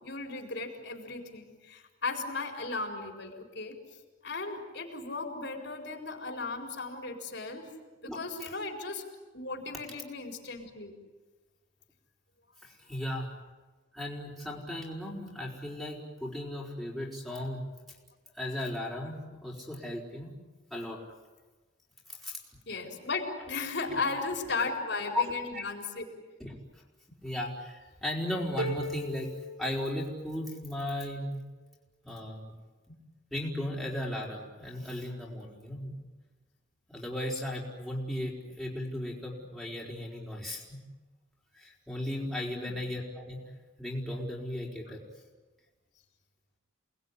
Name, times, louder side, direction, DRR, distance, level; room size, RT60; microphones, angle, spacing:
voice 1, 0.0-3.8 4.2-7.7 8.0-9.0 9.3-10.9 22.7-26.0 42.5-42.8, left 3 dB, 55° left, 2 dB, 4.3 m, -36 dB
voice 2, 12.6-13.3 13.9-17.6 18.3-20.4 20.7-21.0 22.1-22.4 23.9-24.0 25.1-25.2 25.5-25.6 26.4-26.8 27.2-29.3 29.6-31.4 32.0-32.5 32.9-33.0 33.3-35.9 36.9-40.8 41.5-43.4 43.8-45.0, left 1 dB, ahead, -4 dB, 4.8 m, -36 dB
sound 1, 28.6-30.6, right 1 dB, 75° right, 5.0 m, -38 dB
29.0 x 20.5 x 9.9 m, 1.3 s
head